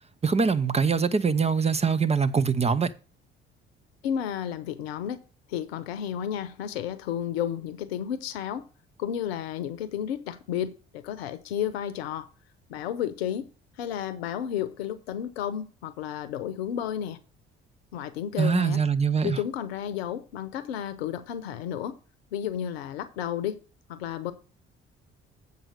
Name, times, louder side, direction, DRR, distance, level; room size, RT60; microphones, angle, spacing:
voice 1, 0.2-2.9 18.4-19.4, right 5 dB, 20° right, 0.7 m, -23 dB
voice 2, 4.0-5.2 5.5-8.7 9.0-12.3 12.7-13.5 13.8-17.2 17.9-18.8 19.2-22.0 22.3-23.6 23.9-24.3, left 10 dB, 70° left, 0.8 m, -32 dB
7.7 x 5.3 x 6.4 m
figure-of-eight pair, 45°, 32 cm